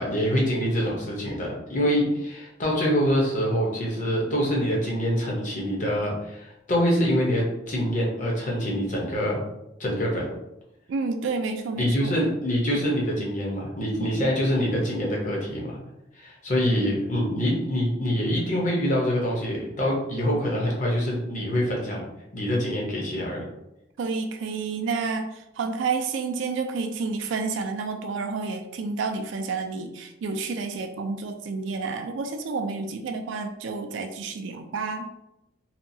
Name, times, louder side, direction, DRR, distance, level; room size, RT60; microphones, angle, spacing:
voice 1, 0.0-9.4 9.8-10.3 11.8-15.8 16.2-22.0 22.3-23.5, equal, 40° left, -2 dB, 0.7 m, -25 dB
voice 2, 10.9-12.1 24.0-35.1, right 4 dB, 70° right, 6 dB, 0.3 m, -30 dB
2.8 x 2.3 x 2.6 m, 0.89 s
head